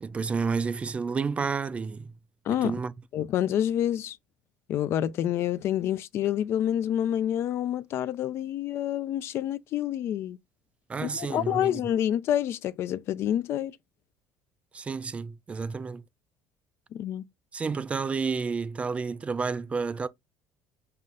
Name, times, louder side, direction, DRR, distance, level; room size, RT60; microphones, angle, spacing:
voice 1, 0.0-2.1 2.6-2.9 10.9-11.8 14.7-16.0 17.5-20.1, right 5 dB, 25° right, 0.3 m, -30 dB
voice 2, 3.1-4.2 4.7-10.4 11.0-13.8 16.9-17.2, left 11 dB, 55° left, 0.3 m, -28 dB
5.4 x 2.1 x 3.7 m
cardioid pair, 110°, 5 cm